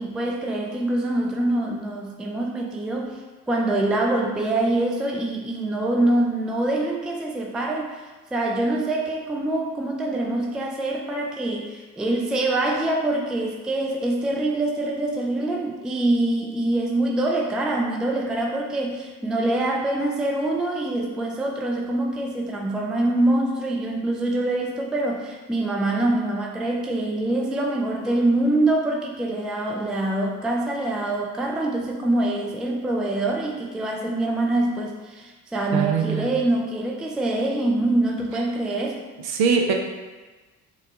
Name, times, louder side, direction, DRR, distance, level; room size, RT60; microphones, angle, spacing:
voice 1, 0.0-3.2 3.5-39.0, right 2 dB, ahead, 0 dB, 0.4 m, -24 dB
voice 2, 35.7-36.3 39.2-39.7, right 6 dB, 55° right, 3 dB, 0.7 m, -22 dB
6.1 x 2.3 x 2.7 m, 1.3 s
hypercardioid pair, 50°, 45 cm